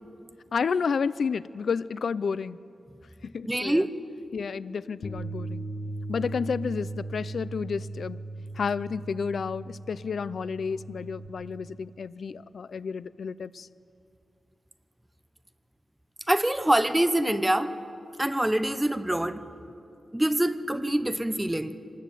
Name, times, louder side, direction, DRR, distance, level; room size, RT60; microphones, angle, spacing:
voice 1, 0.5-2.6 3.2-3.8 4.3-5.6 6.1-8.2 8.6-13.7, left 5 dB, 75° left, 17 dB, 0.5 m, -31 dB
voice 2, 3.4-3.9 16.3-17.8 18.2-19.4 20.1-21.8, right 1 dB, 10° right, 10 dB, 0.9 m, -25 dB
Bass guitar, 5.0-11.3, right 2 dB, 45° left, 1.7 m, -38 dB
25.5 x 19.5 x 9.2 m, 2.7 s
wide cardioid pair, 160°, 0 cm